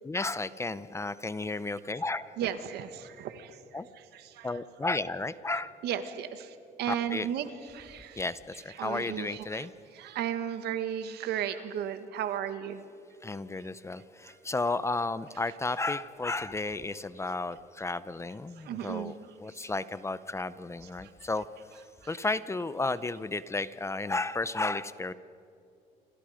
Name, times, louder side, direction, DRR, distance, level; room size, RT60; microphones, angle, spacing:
voice 1, 0.0-2.4 3.7-3.9 4.4-5.7 6.8-7.3 8.2-9.7 13.2-19.1 19.4-21.4 22.1-25.1, left 3 dB, 15° left, 15 dB, 0.7 m, -33 dB
voice 2, 2.4-3.6 4.1-4.6 5.8-8.2 8.8-9.7 10.0-12.8 18.6-19.1 19.6-19.7, right 9 dB, 75° right, 10 dB, 1.8 m, -35 dB
28.5 x 26.5 x 5.1 m, 2.7 s
cardioid pair, 110°, 17 cm